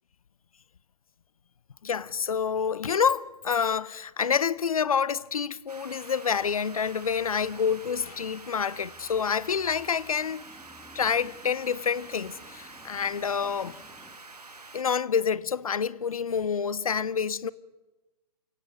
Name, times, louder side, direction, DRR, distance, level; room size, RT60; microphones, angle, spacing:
voice 1, 1.8-10.5 10.9-13.8 14.7-17.5, left 6 dB, 65° left, 0.7 m, -28 dB
sound 1, 5.7-14.8, right 3 dB, 80° right, 1.5 m, -47 dB
sound 2, 6.3-14.2, equal, ahead, 1.3 m, -56 dB
29.0 x 17.0 x 6.3 m
figure-of-eight pair, 125°, 20 cm